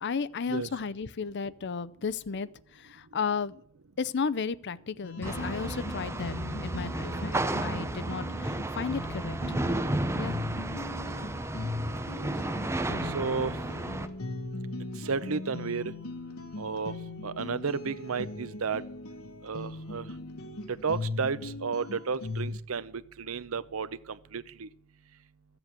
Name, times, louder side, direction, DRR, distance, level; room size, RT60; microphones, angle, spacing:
voice 1, 0.0-3.6 4.0-6.4 6.6-9.4 10.1-10.4, left 5 dB, 55° left, 17 dB, 0.6 m, -34 dB
sound 1, 5.0-22.6, left 2 dB, 85° left, 1.4 m, -39 dB
sound 2, 5.2-6.2, left 1 dB, 10° left, 5.4 m, -45 dB
sound 3, 5.2-14.1, right 1 dB, 15° right, 0.6 m, -33 dB
voice 2, 13.0-13.6 15.0-15.9 16.6-16.9 17.2-18.8 19.4-20.0 20.7-23.9 24.3-24.7, right 5 dB, 70° right, 15 dB, 0.7 m, -32 dB
14.0 x 7.8 x 7.5 m, 0.64 s
head